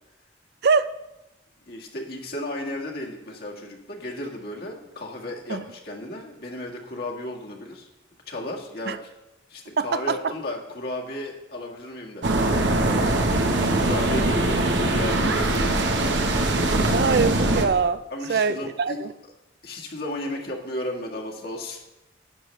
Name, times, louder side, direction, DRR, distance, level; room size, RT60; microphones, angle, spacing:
voice 1, 0.6-1.0 5.5-5.6 8.9-9.0 9.8-10.2 16.9-18.0 18.3-19.1, right 5 dB, 60° right, 14 dB, 0.5 m, -23 dB
voice 2, 1.7-7.9 8.3-9.1 9.5-12.5 12.9-13.1 13.4-16.2 18.1-19.0 19.6-21.8, left 1 dB, 60° left, 0 dB, 1.7 m, -34 dB
sound 1, 12.2-17.7, right 2 dB, 85° right, 1.1 m, -22 dB
11.5 x 9.1 x 3.2 m, 0.95 s
head